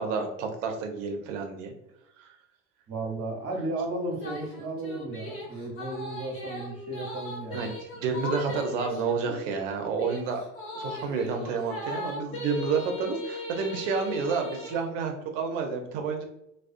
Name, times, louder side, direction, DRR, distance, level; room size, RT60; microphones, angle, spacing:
voice 1, 0.0-1.7 2.2-2.3 7.5-10.4 10.7-16.2, right 5 dB, 70° right, 4 dB, 0.7 m, -30 dB
voice 2, 2.9-7.7, right 2 dB, 40° right, 1 dB, 0.9 m, -34 dB
sound 1, 4.1-14.8, left 2 dB, 35° left, 1.0 m, -39 dB
2.3 x 2.3 x 2.5 m, 0.82 s
hypercardioid pair, 80°, 38 cm